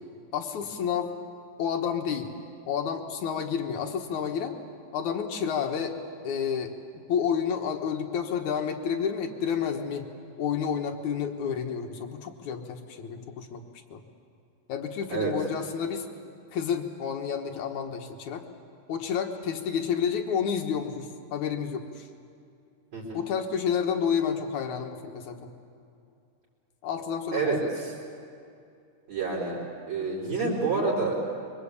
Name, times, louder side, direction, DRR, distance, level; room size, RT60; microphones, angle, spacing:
voice 1, 0.3-1.1 1.6-2.3 2.7-4.6 4.9-6.0 6.2-10.1 10.4-13.6 13.9-14.0 14.7-16.1 16.5-18.4 18.9-22.1 23.1-25.5 26.8-27.7, left 7 dB, 60° left, 4 dB, 2.2 m, -30 dB
voice 2, 22.9-23.2 27.3-27.9 29.1-29.6 29.9-31.2, right 4 dB, 40° right, -6 dB, 5.5 m, -28 dB
27.0 x 23.5 x 8.4 m, 2.5 s
omnidirectional pair, 4.8 m